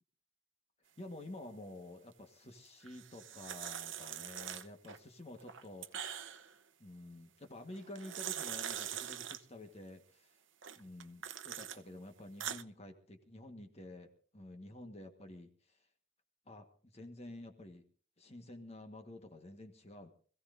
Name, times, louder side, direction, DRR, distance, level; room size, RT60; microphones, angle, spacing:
voice 1, 1.0-6.1 6.8-10.4 10.7-15.9 16.5-17.8 18.2-20.1, left 1 dB, 35° left, 5 dB, 1.4 m, -50 dB
sound 1, 2.9-5.0 5.4-6.5 7.7-9.4 10.6-11.8 12.2-12.6, right 9 dB, 75° right, 0.8 m, -43 dB
25.5 x 16.0 x 2.6 m, 0.43 s
head